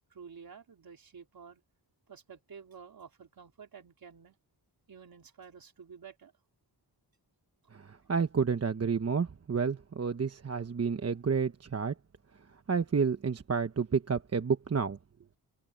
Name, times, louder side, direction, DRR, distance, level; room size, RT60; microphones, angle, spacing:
voice 1, 0.1-1.6 2.1-4.4 4.9-6.3 8.0-8.1, right 6 dB, 60° right, 3.9 m, -51 dB
voice 2, 7.7-11.9 12.7-15.0, right 5 dB, 40° right, 1.1 m, -30 dB
wide cardioid pair, 95°, 40 cm